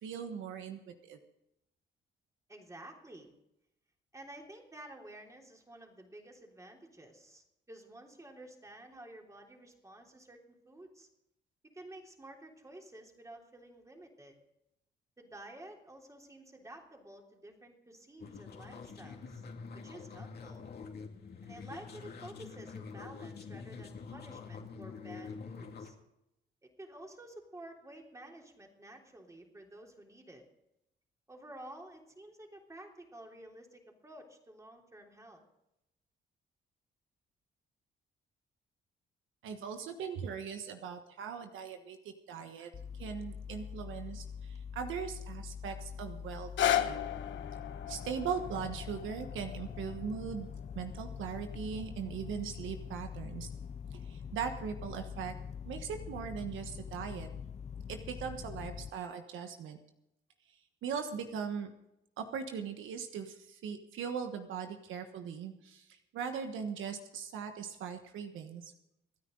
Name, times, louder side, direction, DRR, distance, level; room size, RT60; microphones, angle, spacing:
voice 1, 0.0-1.2 39.4-47.0 47.9-50.5 50.7-53.5 53.9-55.3 55.6-57.3 57.9-59.8 60.8-61.7 62.2-68.7, right 7 dB, 80° right, 6 dB, 1.3 m, -40 dB
voice 2, 2.5-3.3 4.1-11.1 11.7-14.4 15.2-19.5 19.7-20.6 21.4-25.9 26.6-30.4 31.3-35.4, right 1 dB, 15° right, 1 dB, 3.4 m, -51 dB
sound 1, 18.2-25.9, left 5 dB, 55° left, 2.3 m, -46 dB
sound 2, 42.7-58.9, left 7 dB, 35° left, 0.5 m, -44 dB
sound 3, 46.3-52.4 53.1-53.2, left 11 dB, 70° left, 1.1 m, -36 dB
26.0 x 9.7 x 3.9 m, 0.85 s
cardioid pair, 90°, 20 cm